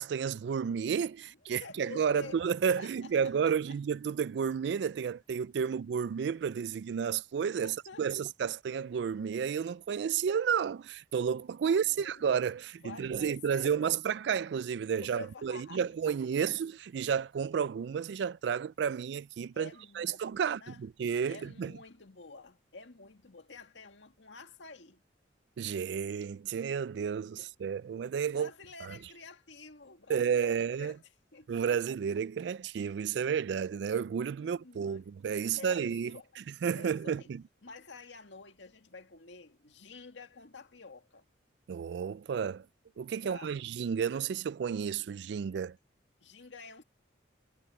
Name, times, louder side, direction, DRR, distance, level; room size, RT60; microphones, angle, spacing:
voice 1, 0.0-19.7 20.0-21.7 25.6-28.5 28.8-29.0 30.1-30.9 31.5-36.2 36.6-37.4 41.7-42.7 43.0-45.8, right 7 dB, 65° right, 0.3 m, -31 dB
voice 2, 1.2-2.4 2.8-3.8 5.7-5.8 7.6-8.2 11.7-12.2 12.8-14.0 15.0-15.8 16.3-16.5 19.5-20.8 21.3-25.0 27.3-27.5 28.3-31.0 31.3-31.7 34.4-35.0 35.4-37.3 37.6-41.3 43.2-43.7 46.2-46.8, left 4 dB, 75° left, 1.9 m, -50 dB
head